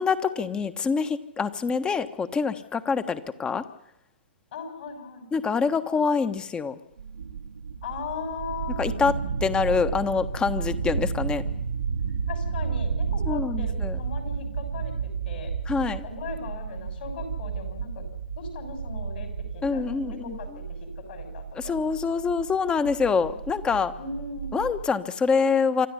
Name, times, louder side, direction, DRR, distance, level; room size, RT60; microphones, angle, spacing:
voice 1, 0.0-3.6 5.3-6.7 8.8-9.1 9.4-11.4 13.3-14.0 15.7-16.0 19.6-20.4 21.6-23.9 24.5-25.9, left 5 dB, 15° left, 12 dB, 1.3 m, -25 dB
voice 2, 4.5-5.8 7.8-8.9 12.3-15.5 16.0-18.0 18.4-21.8 24.0-24.6, left 4 dB, 60° left, 6 dB, 7.0 m, -38 dB
sound 1, 7.0-24.8, right 5 dB, 75° right, 1.7 m, -32 dB
26.5 x 12.5 x 9.9 m, 0.85 s
hypercardioid pair, 120°, 6 cm